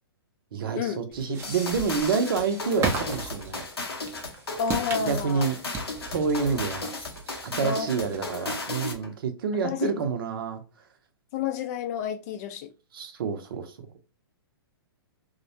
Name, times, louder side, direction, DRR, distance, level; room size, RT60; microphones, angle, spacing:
voice 1, 0.5-3.6 5.1-5.6 6.1-6.9 7.4-10.6 12.9-13.7, right 5 dB, 65° right, 0.6 m, -28 dB
sound 1, 1.1-8.4, right 4 dB, 20° right, 0.5 m, -37 dB
sound 2, 1.4-9.1, left 3 dB, 80° left, 0.7 m, -35 dB
voice 2, 4.6-5.5 7.6-8.0 9.6-9.9 11.3-12.7, left 7 dB, 40° left, 0.4 m, -30 dB
2.2 x 2.1 x 2.7 m
hypercardioid pair, 120°, 13 cm